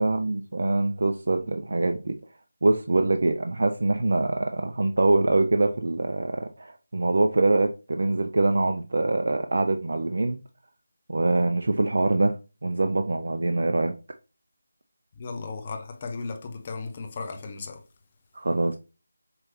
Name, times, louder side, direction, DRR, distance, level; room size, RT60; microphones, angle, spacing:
voice 1, 0.0-2.2 2.6-10.4 11.1-12.3 12.6-13.9 18.3-18.8, right 2 dB, 50° right, 0.3 m, -24 dB
voice 2, 15.2-17.8, left 4 dB, 25° left, 0.6 m, -35 dB
4.7 x 3.0 x 2.9 m
figure-of-eight pair, 160°, 0 cm